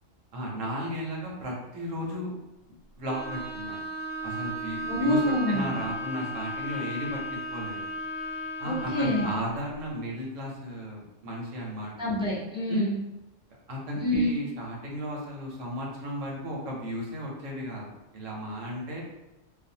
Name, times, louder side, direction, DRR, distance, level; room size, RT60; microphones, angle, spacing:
voice 1, 0.3-2.3 3.0-3.8 4.2-7.2 7.5-7.9 8.6-11.9 12.7-12.9 13.7-17.8 18.1-19.0, equal, 90° right, -2 dB, 1.1 m, -34 dB
Bowed string instrument, 3.0-9.6, right 1 dB, 75° left, 0.9 m, -35 dB
voice 2, 4.9-5.7 8.6-9.3 12.0-13.0 14.0-14.4, equal, 5° right, -9 dB, 0.4 m, -26 dB
2.5 x 2.3 x 2.7 m, 0.97 s
omnidirectional pair, 1.3 m